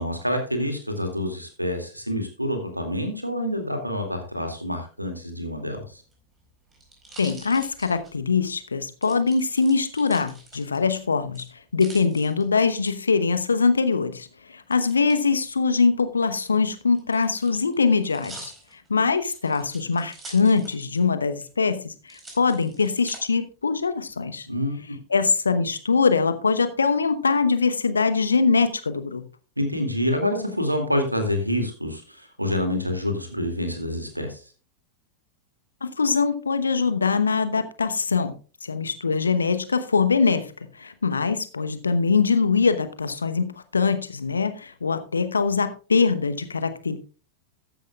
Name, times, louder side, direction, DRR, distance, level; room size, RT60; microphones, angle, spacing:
voice 1, 0.0-6.0 24.5-25.0 29.6-34.4, left 1 dB, 90° right, 2.3 m, -27 dB
sound 1, 6.0-8.5 9.0-11.0 11.3-12.9 14.7-15.2 16.2-21.1 21.4-21.5 22.1-23.2 23.8-24.4, right 2 dB, 15° right, 4.5 m, -46 dB
voice 2, 7.2-11.4 11.7-18.5 18.9-24.5 25.1-29.2 35.8-38.3 38.6-40.5 40.8-47.0, left 4 dB, 75° left, 1.0 m, -23 dB
14.0 x 10.5 x 2.3 m
figure-of-eight pair, 90°, 0 cm